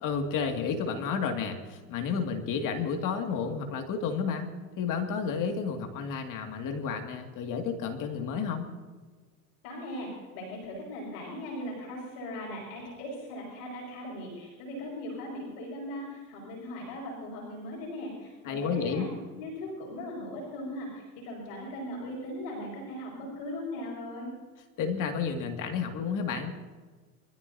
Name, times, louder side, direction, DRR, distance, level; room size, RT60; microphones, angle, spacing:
voice 1, 0.0-4.5 4.8-8.7 18.4-19.1 24.8-26.5, left 6 dB, 45° left, 4 dB, 2.3 m, -31 dB
voice 2, 9.6-19.1 19.4-24.3, left 1 dB, 65° left, -2 dB, 6.0 m, -39 dB
24.5 x 14.0 x 2.8 m, 1.4 s
hypercardioid pair, 100°, 44 cm